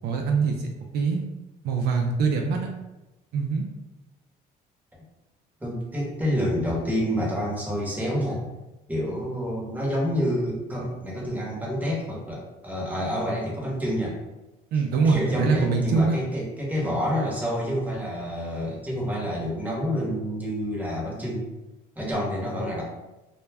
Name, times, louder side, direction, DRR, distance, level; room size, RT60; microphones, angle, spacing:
voice 1, 0.0-1.2 1.6-2.7 3.3-3.6 14.7-16.2, right 4 dB, 75° right, 2 dB, 0.4 m, -23 dB
voice 2, 5.6-8.4 8.9-14.2 14.7-21.5 22.0-22.8, equal, 10° right, -4 dB, 0.9 m, -28 dB
2.2 x 2.1 x 3.3 m, 1.0 s
cardioid pair, 110°, 17 cm